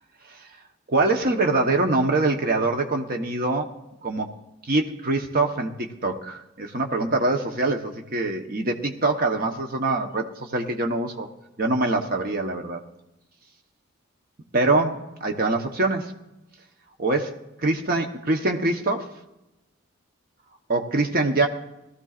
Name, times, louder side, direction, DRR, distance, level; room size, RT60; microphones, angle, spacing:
voice 1, 0.9-3.7 4.0-4.3 4.6-11.3 11.6-12.8 14.5-16.1 17.0-17.4 17.6-19.1 20.7-21.5, right 2 dB, 45° right, 3 dB, 1.0 m, -24 dB
19.5 x 14.0 x 2.5 m, 0.94 s
head